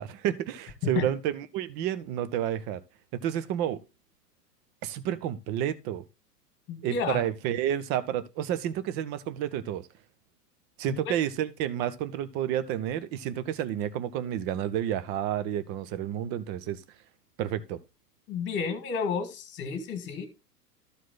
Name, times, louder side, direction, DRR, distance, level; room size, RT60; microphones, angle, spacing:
voice 1, 0.0-2.8 3.1-3.8 4.8-6.0 6.8-9.8 10.8-16.8 17.4-17.8, right 11 dB, 20° right, 0.6 m, -30 dB
voice 2, 6.7-7.2 10.9-11.1 18.3-20.3, left 5 dB, 25° left, 2.1 m, -31 dB
13.0 x 4.6 x 4.0 m
figure-of-eight pair, 100°, 48 cm